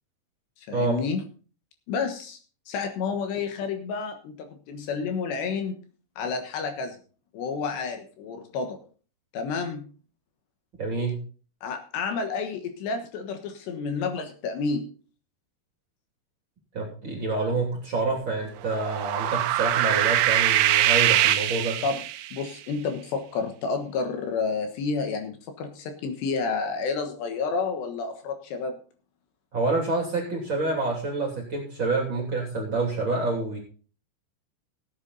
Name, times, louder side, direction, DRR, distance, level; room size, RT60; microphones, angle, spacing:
voice 1, 0.6-1.2 1.9-2.4 2.7-5.8 6.2-7.0 7.3-8.8 9.3-9.8 11.6-14.9 21.8-22.0 22.3-28.8, left 4 dB, 70° left, 6 dB, 3.3 m, -30 dB
voice 2, 10.8-11.1 16.7-21.8 29.5-33.6, right 3 dB, 30° right, 0 dB, 3.0 m, -27 dB
sound 1, 18.7-22.4, right 13 dB, 90° right, 3.3 m, -23 dB
17.0 x 8.5 x 4.0 m, 0.39 s
omnidirectional pair, 5.4 m